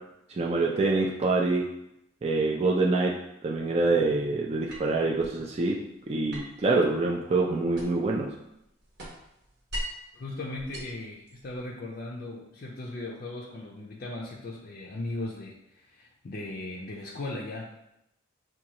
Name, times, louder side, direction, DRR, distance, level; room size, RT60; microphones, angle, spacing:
voice 1, 0.4-1.6 2.2-3.1 3.4-5.8 6.1-8.3, right 3 dB, 30° right, -2 dB, 0.4 m, -25 dB
sound 1, 4.7-5.4 6.3-8.2 8.5-10.1 10.6-11.7, equal, 55° right, 0.9 m, -40 dB
voice 2, 10.1-17.7, left 2 dB, 45° left, -2 dB, 0.4 m, -38 dB
6.0 x 2.3 x 2.9 m, 0.83 s
head